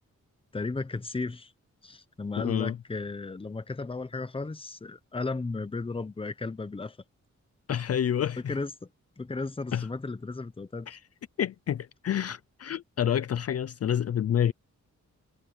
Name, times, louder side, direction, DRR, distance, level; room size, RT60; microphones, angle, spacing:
voice 1, 0.5-1.5 1.8-7.0 8.5-8.9 9.2-10.9, left 3 dB, 20° left, 0.9 m, -34 dB
voice 2, 2.4-2.8 7.7-8.6 9.7-9.9 10.9-11.0 11.4-14.5, left 9 dB, 55° left, 0.5 m, -28 dB
wide cardioid pair, 150°, 30 cm